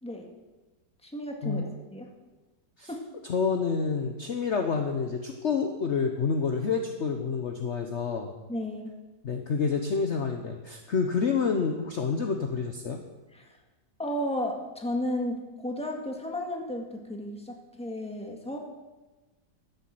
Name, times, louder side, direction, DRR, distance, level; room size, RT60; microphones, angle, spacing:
voice 1, 1.0-1.6 1.9-2.1 2.9-3.0 8.5-8.9 13.3-13.5 14.0-18.6, left 1 dB, 5° left, 1 dB, 1.7 m, -33 dB
voice 2, 3.2-8.3 9.2-13.0, left 5 dB, 50° left, 4 dB, 1.1 m, -28 dB
12.0 x 9.4 x 7.7 m, 1.2 s
omnidirectional pair, 1.9 m